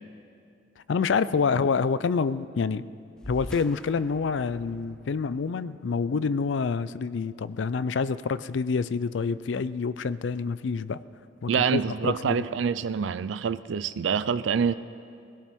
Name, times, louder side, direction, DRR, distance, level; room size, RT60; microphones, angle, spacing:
voice 1, 0.9-2.8 3.3-11.0 11.4-12.5, left 5 dB, 80° left, 15 dB, 0.4 m, -27 dB
sound 1, 3.2-8.1, equal, 5° left, 0.4 m, -46 dB
voice 2, 11.5-14.7, right 6 dB, 85° right, 13 dB, 0.4 m, -26 dB
21.5 x 17.0 x 3.6 m, 2.5 s
head